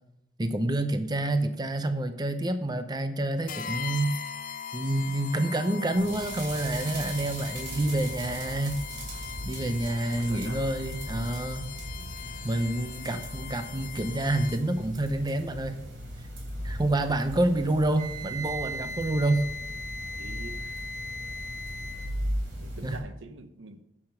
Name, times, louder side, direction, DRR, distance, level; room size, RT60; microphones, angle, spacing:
voice 1, 0.4-4.2 4.7-8.9 9.4-11.7 12.4-15.7 16.6-19.4 22.8-23.0, right 1 dB, 20° right, 9 dB, 0.6 m, -28 dB
sound 1, 3.5-14.9, left 8 dB, 50° left, 0.6 m, -40 dB
sound 2, 6.0-23.0, equal, 65° right, 3.4 m, -38 dB
voice 2, 10.1-10.6 12.0-12.2 13.0-13.2 20.0-20.8 22.6-23.8, right 3 dB, 85° right, 9 dB, 0.9 m, -46 dB
Wind instrument woodwind instrument, 17.9-22.1, equal, 45° right, 1.3 m, -38 dB
9.9 x 6.8 x 5.8 m, 0.87 s
head